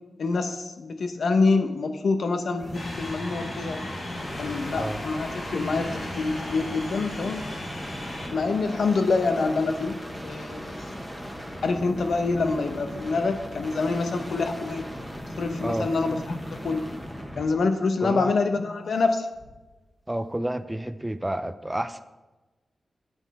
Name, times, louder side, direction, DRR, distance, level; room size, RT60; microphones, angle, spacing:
voice 1, 0.2-3.9 4.4-7.5 8.3-10.7 11.6-14.9 15.4-16.8 17.4-19.3, left 3 dB, 70° left, 7 dB, 0.8 m, -26 dB
sound 1, 2.5-17.6 19.3-19.8, equal, 10° left, 1.2 m, -38 dB
sound 2, 2.7-8.3, left 1 dB, 55° left, 2.1 m, -36 dB
voice 2, 18.0-18.3 20.1-22.0, right 1 dB, 10° right, 11 dB, 0.4 m, -30 dB
8.8 x 7.9 x 4.1 m, 1.1 s
wide cardioid pair, 140°, 0 cm